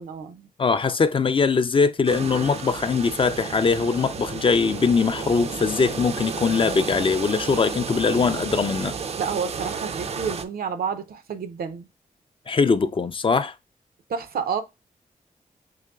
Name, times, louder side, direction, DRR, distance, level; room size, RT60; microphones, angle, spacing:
voice 1, 0.0-0.5 9.2-11.9 14.1-14.6, right 6 dB, 85° right, 0.6 m, -29 dB
voice 2, 0.6-8.9 12.5-13.5, left 5 dB, 35° left, 0.4 m, -21 dB
sound 1, 2.1-10.5, right 5 dB, 45° right, 0.4 m, -32 dB
5.6 x 2.9 x 2.2 m
cardioid pair, 75°, 15 cm